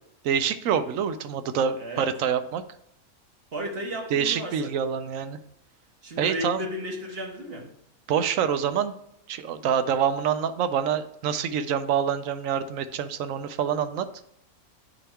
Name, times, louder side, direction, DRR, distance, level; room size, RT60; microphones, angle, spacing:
voice 1, 0.2-2.6 4.1-5.4 6.2-6.7 8.1-8.9 9.3-14.1, right 8 dB, 70° right, 11 dB, 0.9 m, -26 dB
voice 2, 1.8-2.1 3.5-4.7 6.0-7.7, equal, 45° right, 1 dB, 1.5 m, -34 dB
9.8 x 3.5 x 4.3 m, 0.75 s
omnidirectional pair, 1.5 m